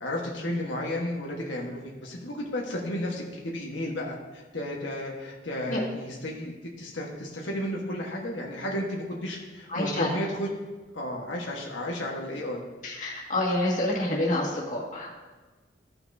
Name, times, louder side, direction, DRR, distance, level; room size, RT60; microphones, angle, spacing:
voice 1, 0.0-10.5 10.9-12.6, left 1 dB, 90° left, -2 dB, 1.4 m, -33 dB
voice 2, 9.7-10.1 12.8-15.1, left 1 dB, 45° left, -4 dB, 1.9 m, -28 dB
15.0 x 5.9 x 2.7 m, 1.3 s
head